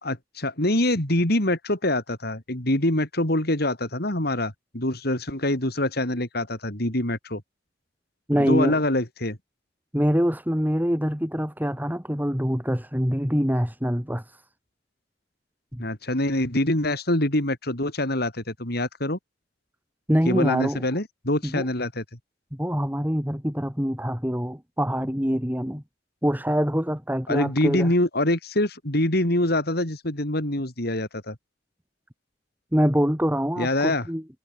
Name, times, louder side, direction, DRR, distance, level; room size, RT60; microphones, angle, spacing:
voice 1, 0.0-7.4 8.4-9.4 15.8-19.2 20.2-22.0 27.3-31.3 33.6-34.1, left 1 dB, 60° left, 4.8 m, -25 dB
voice 2, 8.3-8.8 9.9-14.2 15.7-15.8 20.1-20.8 21.4-21.6 22.6-25.8 26.2-27.9 32.7-34.2, equal, 10° right, 6.4 m, -24 dB
head